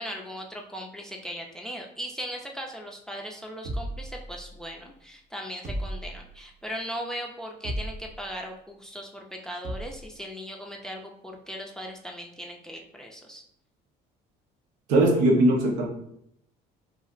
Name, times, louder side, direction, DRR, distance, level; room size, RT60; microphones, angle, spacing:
voice 1, 0.0-13.4, equal, 5° left, 1 dB, 0.4 m, -38 dB
sound 1, 3.6-4.8 5.6-6.5 7.6-8.3 9.6-10.1, right 1 dB, 45° right, 0.7 m, -35 dB
voice 2, 14.9-15.9, right 1 dB, 85° right, 0 dB, 0.8 m, -20 dB
2.4 x 2.0 x 3.6 m, 0.72 s
supercardioid pair, 90°, 18 cm